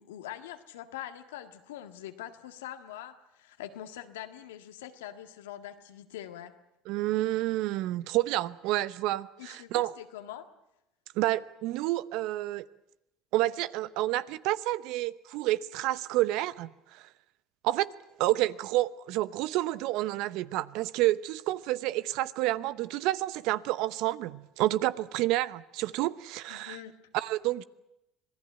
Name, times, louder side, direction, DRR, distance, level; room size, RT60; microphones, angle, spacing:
voice 1, 0.0-6.5 9.4-10.4 26.5-26.9, left 12 dB, 90° left, 1.7 m, -43 dB
voice 2, 6.9-9.9 11.2-12.6 13.3-17.1 17.6-17.9 18.2-26.8 27.1-27.6, right 16 dB, 70° right, 0.8 m, -29 dB
26.0 x 17.0 x 9.2 m
supercardioid pair, 85°, 0 cm